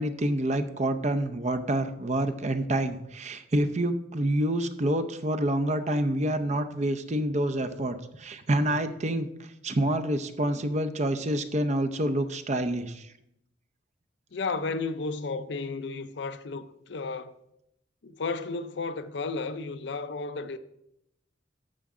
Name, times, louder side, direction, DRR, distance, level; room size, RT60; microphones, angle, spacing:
voice 1, 0.0-13.1, right 1 dB, 35° right, 0.6 m, -27 dB
voice 2, 14.3-17.3 18.0-20.6, left 4 dB, 70° left, 0.6 m, -33 dB
11.5 x 7.2 x 3.7 m
head